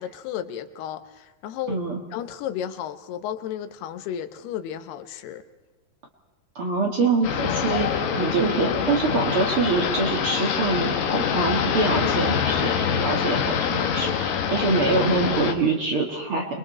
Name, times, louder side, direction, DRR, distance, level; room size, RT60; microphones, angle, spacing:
voice 1, 0.0-1.8 2.1-5.4, left 10 dB, 85° left, 10 dB, 3.0 m, -33 dB
voice 2, 1.7-2.0 6.6-16.5, right 3 dB, 45° right, 1 dB, 2.1 m, -25 dB
sound 1, 7.2-15.5, left 7 dB, 65° left, 2.9 m, -25 dB
29.0 x 22.0 x 4.3 m, 1.2 s
omnidirectional pair, 4.5 m